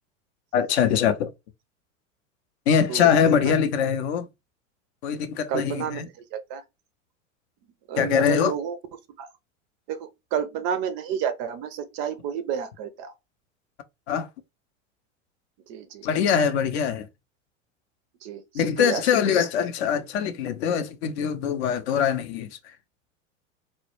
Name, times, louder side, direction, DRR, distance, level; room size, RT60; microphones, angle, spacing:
voice 1, 0.5-1.3 2.7-4.3 5.0-6.1 8.0-8.5 14.1-14.3 16.0-17.1 18.5-22.7, left 8 dB, 55° left, 0.5 m, -23 dB
voice 2, 5.5-6.0 6.3-6.6 7.9-8.8 9.2-9.3 9.9-13.1 15.7-16.0 18.2-18.4 18.8-19.0 19.3-19.4, right 8 dB, 40° right, 0.4 m, -30 dB
2.1 x 2.0 x 2.9 m
hypercardioid pair, 85°, 39 cm